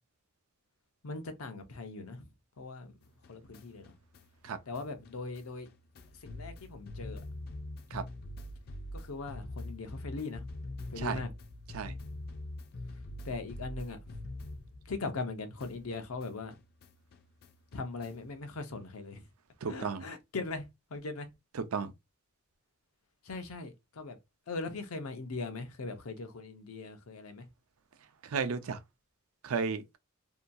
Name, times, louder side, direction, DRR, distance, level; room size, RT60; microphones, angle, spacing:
voice 1, 1.0-2.3 2.6-2.9 3.3-3.9 4.7-5.7 6.2-7.2 8.9-10.4 10.9-11.3 13.2-14.2 14.9-16.5 17.7-19.3 19.7-21.3 23.2-24.2 24.5-27.5, left 3 dB, 90° left, 0.7 m, -40 dB
sound 1, 3.0-15.3 15.6-18.4, left 1 dB, 45° left, 0.4 m, -45 dB
voice 2, 19.6-20.0 21.7-21.9 28.2-28.8 29.4-30.0, right 5 dB, 80° right, 0.5 m, -33 dB
2.8 x 2.2 x 2.6 m
head